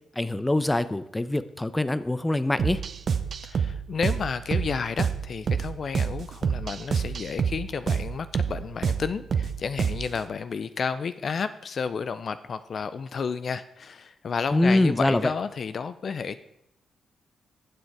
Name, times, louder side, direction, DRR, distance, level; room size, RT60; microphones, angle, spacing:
voice 1, 0.2-2.8 14.5-15.2, left 1 dB, 20° left, 14 dB, 0.7 m, -24 dB
sound 1, 2.6-10.2, right 6 dB, 60° right, 0.8 m, -28 dB
voice 2, 3.4-16.4, left 5 dB, 55° left, 12 dB, 0.5 m, -31 dB
14.5 x 6.4 x 4.7 m, 0.78 s
hypercardioid pair, 45°, 0 cm